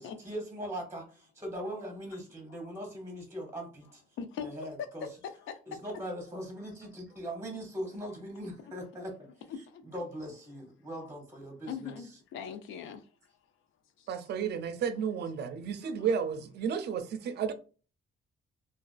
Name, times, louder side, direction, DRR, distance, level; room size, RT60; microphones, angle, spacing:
voice 1, 0.0-4.0 4.4-5.1 5.7-9.1 9.9-12.0, equal, 15° right, 0.8 m, -40 dB
voice 2, 4.2-4.7 5.4-5.8 8.6-8.7 9.5-9.8 11.0-11.1 11.7-13.1 14.0-14.1 15.8-16.1, left 7 dB, 80° left, 0.4 m, -41 dB
voice 3, 14.1-17.5, right 7 dB, 55° right, 0.4 m, -32 dB
2.3 x 2.3 x 2.3 m
cardioid pair, 90°, 20 cm